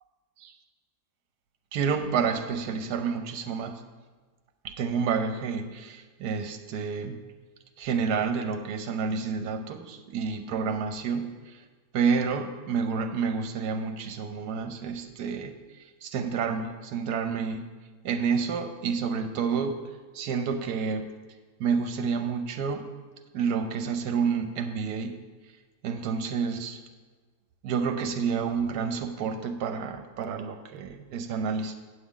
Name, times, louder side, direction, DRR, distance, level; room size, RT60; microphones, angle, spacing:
voice 1, 1.7-3.8 4.6-7.2 7.8-11.6 11.9-17.7 18.0-19.8 20.1-21.0 21.6-22.9 23.3-25.2 25.8-26.8 27.6-31.8, right 5 dB, 75° right, 7 dB, 1.2 m, -29 dB
8.4 x 8.2 x 3.8 m, 1.4 s
omnidirectional pair, 1.8 m